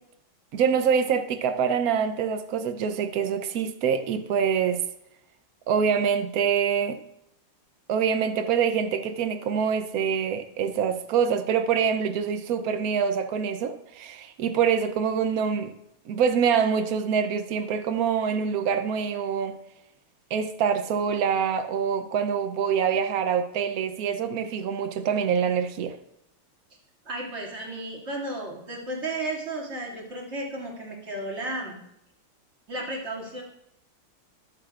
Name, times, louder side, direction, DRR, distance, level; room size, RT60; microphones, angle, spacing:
voice 1, 0.5-4.8 5.7-7.0 7.9-15.7 16.1-19.6 20.3-26.0, right 7 dB, 75° right, 0.8 m, -25 dB
voice 2, 27.0-31.7 32.7-33.4, right 2 dB, 30° right, 2.7 m, -33 dB
22.5 x 7.8 x 2.5 m
omnidirectional pair, 2.4 m